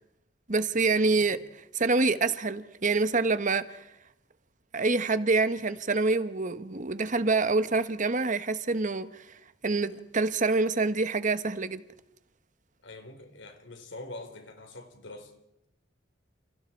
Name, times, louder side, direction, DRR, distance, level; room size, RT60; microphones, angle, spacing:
voice 1, 0.5-1.4 1.7-3.8 4.7-9.2 9.6-11.8, right 3 dB, 45° right, 1.2 m, -26 dB
voice 2, 12.8-15.3, left 2 dB, 90° left, 4.2 m, -44 dB
29.5 x 29.5 x 4.6 m
head